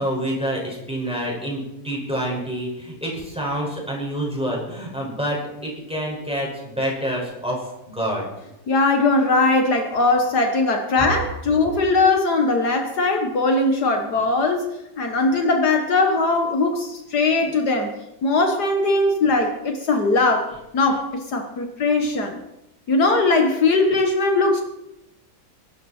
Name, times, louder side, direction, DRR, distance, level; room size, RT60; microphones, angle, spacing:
voice 1, 0.0-8.2, equal, 5° right, -3 dB, 5.6 m, -27 dB
voice 2, 8.7-14.7 15.0-17.9 18.2-22.4 22.9-24.6, left 3 dB, 65° left, 4 dB, 1.9 m, -20 dB
22.5 x 12.0 x 4.4 m, 0.90 s
omnidirectional pair, 1.9 m